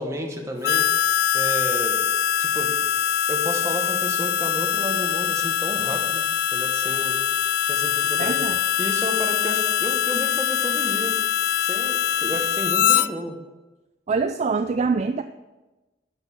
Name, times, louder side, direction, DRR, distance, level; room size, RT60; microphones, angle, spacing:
voice 1, 0.0-2.0 2.4-2.7 3.3-6.3 6.5-7.2 7.6-8.4 8.8-11.1 11.6-13.4, equal, 15° right, 2 dB, 1.4 m, -32 dB
Harmonica, 0.6-13.1, left 9 dB, 65° left, 0.3 m, -23 dB
voice 2, 8.2-8.6 14.1-15.2, right 4 dB, 40° right, 9 dB, 0.3 m, -24 dB
10.5 x 5.4 x 7.1 m, 1.1 s
head